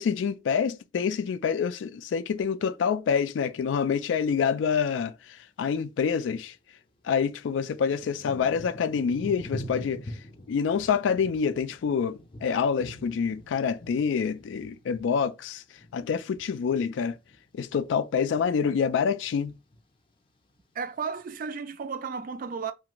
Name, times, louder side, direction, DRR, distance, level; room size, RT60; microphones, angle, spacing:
voice 1, 0.0-5.1 5.6-6.5 7.1-10.0 10.5-15.6 15.9-17.1 17.6-19.5, left 6 dB, 90° left, 0.3 m, -27 dB
Thunder / Rain, 6.5-6.6 7.3-16.8 17.1-18.0 18.5-18.9 19.1-20.0 20.6-20.7, equal, 30° left, 0.5 m, -44 dB
voice 2, 20.8-22.7, right 5 dB, 50° right, 0.3 m, -33 dB
2.5 x 2.3 x 2.9 m
head